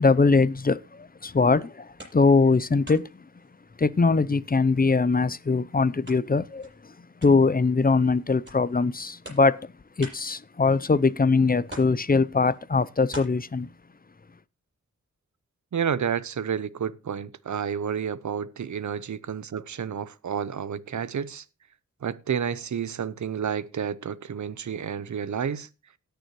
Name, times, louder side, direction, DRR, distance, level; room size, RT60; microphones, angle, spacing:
voice 1, 0.0-3.3 3.8-13.7, left 4 dB, 30° left, 0.6 m, -22 dB
sound 1, 1.4-2.5 2.8-4.4 4.7-11.2 11.6-13.3, right 1 dB, 40° right, 7.7 m, -47 dB
voice 2, 15.7-21.4 22.0-25.7, right 7 dB, 70° right, 0.8 m, -30 dB
17.5 x 6.9 x 3.1 m
cardioid pair, 60°, 30 cm